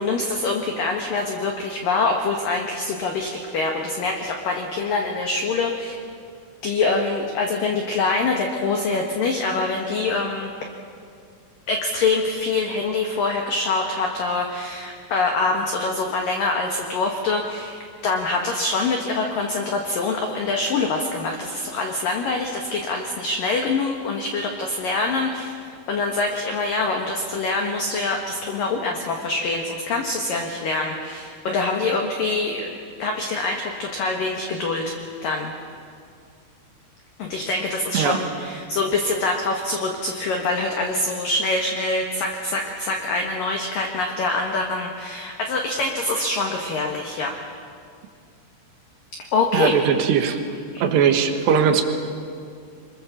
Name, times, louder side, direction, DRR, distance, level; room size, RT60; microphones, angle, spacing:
voice 1, 0.0-6.0 6.6-10.5 11.7-17.8 18.0-25.6 25.9-32.7 33.0-34.9 35.2-35.5 37.2-47.3 49.3-49.8 50.7-50.8, left 3 dB, 65° left, 2 dB, 2.4 m, -25 dB
voice 2, 49.5-50.4 50.8-51.9, right 7 dB, 70° right, 6 dB, 3.1 m, -19 dB
26.5 x 22.5 x 7.4 m, 2.3 s
omnidirectional pair, 6.0 m